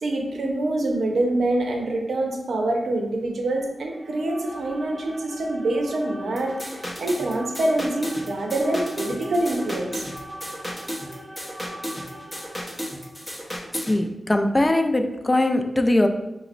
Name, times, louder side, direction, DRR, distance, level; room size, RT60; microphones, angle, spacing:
voice 1, 0.0-10.1, right 2 dB, 85° right, 2 dB, 0.5 m, -25 dB
sound 1, 3.8-13.3, right 1 dB, 30° right, 1.0 m, -42 dB
sound 2, 6.4-14.0, equal, 10° left, 0.8 m, -34 dB
voice 2, 13.7-16.1, left 1 dB, 25° left, 6 dB, 0.3 m, -21 dB
5.0 x 2.0 x 2.4 m, 0.96 s
cardioid pair, 70°, 0 cm